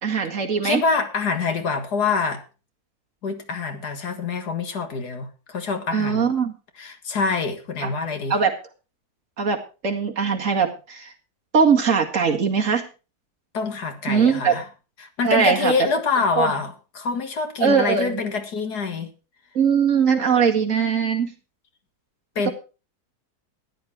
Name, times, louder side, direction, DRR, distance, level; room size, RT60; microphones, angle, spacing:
voice 1, 0.0-0.8 5.9-6.5 7.8-8.0 8.3-8.5 9.4-11.1 11.5-12.9 14.1-14.5 15.2-15.7 16.4-16.5 17.6-18.2 19.5-21.3, right 6 dB, 55° right, 3 dB, 2.3 m, -21 dB
voice 2, 0.6-2.4 3.2-6.3 6.8-8.4 13.5-14.7 15.0-19.1 20.3-20.5 22.4-22.5, left 4 dB, 85° left, 7 dB, 2.3 m, -25 dB
14.0 x 9.9 x 4.8 m, 0.33 s
omnidirectional pair, 1.7 m